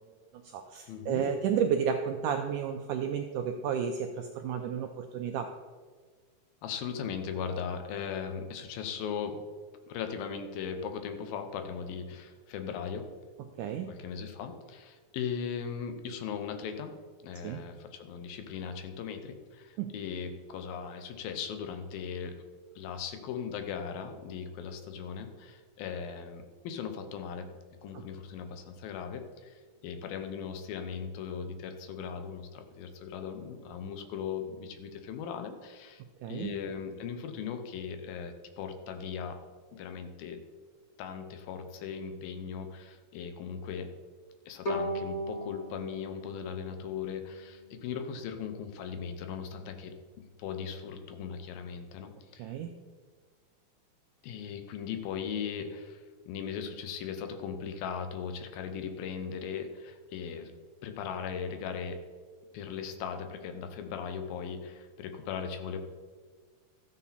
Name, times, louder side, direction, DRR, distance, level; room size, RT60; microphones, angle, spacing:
voice 1, 0.3-5.5 13.6-13.9 17.4-17.6 19.8-19.9 27.9-28.0 36.2-36.5 52.4-52.7, right 7 dB, 90° right, 5 dB, 1.8 m, -32 dB
voice 2, 0.9-1.2 6.6-9.4 9.9-13.1 13.9-16.9 17.2-22.4 22.8-27.5 27.8-36.0 36.3-39.4 39.7-40.4 41.0-43.9 44.5-50.0 50.4-52.5 54.2-60.5 60.8-62.0 62.5-65.8, left 7 dB, 80° left, 7 dB, 2.7 m, -38 dB
Bowed string instrument, 44.6-47.7, equal, 40° left, 1.4 m, -37 dB
13.0 x 8.5 x 4.2 m, 1.5 s
omnidirectional pair, 4.3 m